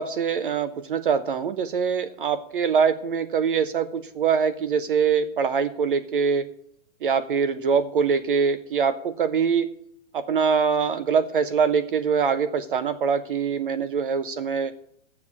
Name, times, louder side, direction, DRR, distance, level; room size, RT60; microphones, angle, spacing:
voice 1, 0.0-6.5 7.0-9.7 10.1-14.7, right 6 dB, 45° right, 13 dB, 0.5 m, -23 dB
7.2 x 6.9 x 8.1 m, 0.71 s
hypercardioid pair, 170°, 39 cm